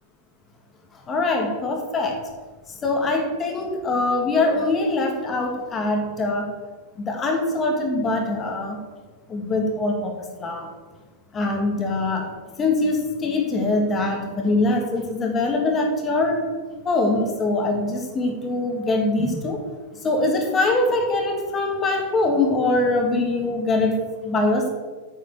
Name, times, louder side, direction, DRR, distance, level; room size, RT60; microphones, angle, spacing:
voice 1, 1.1-2.2 2.8-6.5 7.0-8.8 9.3-10.1 10.4-10.7 11.3-12.3 12.6-16.5 16.8-19.6 20.0-23.9 24.2-24.7, left 2 dB, 25° left, 2 dB, 2.2 m, -23 dB
8.8 x 8.3 x 6.8 m, 1.4 s
figure-of-eight pair, 90°, 0 cm